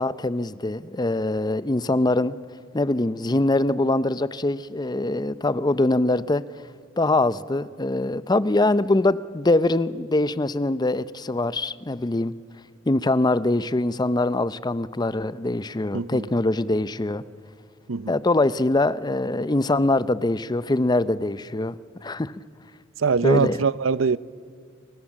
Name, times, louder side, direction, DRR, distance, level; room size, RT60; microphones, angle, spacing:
voice 1, 0.0-2.4 2.7-6.4 7.0-12.3 12.9-17.2 18.1-21.7 22.0-22.3 23.2-23.6, left 2 dB, 20° left, 0.6 m, -23 dB
voice 2, 15.9-16.3 17.9-18.2 23.0-24.2, right 5 dB, 75° right, 0.6 m, -23 dB
29.0 x 23.5 x 7.3 m
head